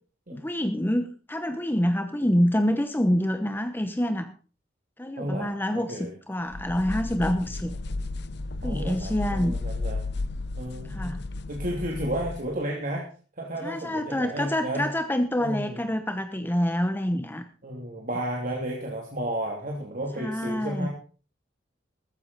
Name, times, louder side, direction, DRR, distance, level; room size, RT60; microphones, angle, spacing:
voice 1, 0.3-4.3 5.0-7.7 8.6-9.6 10.9-11.2 13.6-17.5 20.2-20.9, equal, 10° left, 8 dB, 1.0 m, -27 dB
voice 2, 5.2-6.1 8.6-10.0 10.6-11.2 11.5-13.0 13.4-14.8 15.4-15.8 17.6-20.9, right 1 dB, 45° right, -1 dB, 2.9 m, -32 dB
sound 1, 6.5-12.5, left 2 dB, 65° left, 0.8 m, -33 dB
14.5 x 14.5 x 4.1 m, 0.39 s
head